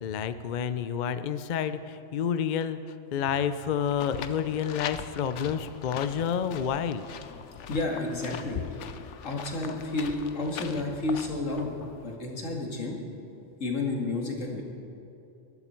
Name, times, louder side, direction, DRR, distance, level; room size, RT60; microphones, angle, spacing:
voice 1, 0.0-2.8 3.1-7.1, left 8 dB, 50° left, 12 dB, 0.6 m, -29 dB
sound 1, 3.8-12.2, left 8 dB, 75° left, 1.0 m, -42 dB
voice 2, 7.7-8.6 9.2-11.7 12.0-13.0 13.6-14.6, left 2 dB, 90° left, 0 dB, 2.5 m, -31 dB
20.5 x 12.0 x 4.5 m, 2.9 s
omnidirectional pair, 1.3 m